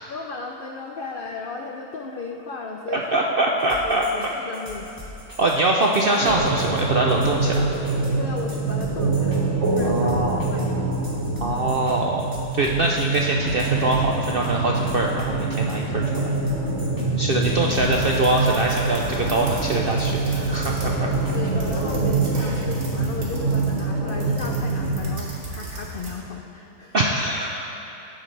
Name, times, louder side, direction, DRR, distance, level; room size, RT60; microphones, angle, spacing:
voice 1, 0.1-3.3 3.7-5.0 8.2-10.2 10.5-11.0 17.0-17.6 21.3-27.0, left 4 dB, 65° left, 1 dB, 0.5 m, -35 dB
voice 2, 2.9-4.1 5.4-7.6 9.8-10.4 11.4-12.2 12.5-16.0 17.2-21.1 22.4-22.6 26.9-27.9, right 2 dB, 60° right, 0 dB, 0.6 m, -23 dB
sound 1, 3.6-22.9, left 1 dB, 15° right, 1.8 m, -41 dB
sound 2, 6.2-25.0, right 3 dB, 45° right, 1.9 m, -25 dB
sound 3, 17.7-26.2, right 1 dB, 85° right, 2.4 m, -36 dB
16.5 x 8.8 x 3.3 m, 2.8 s
omnidirectional pair, 1.7 m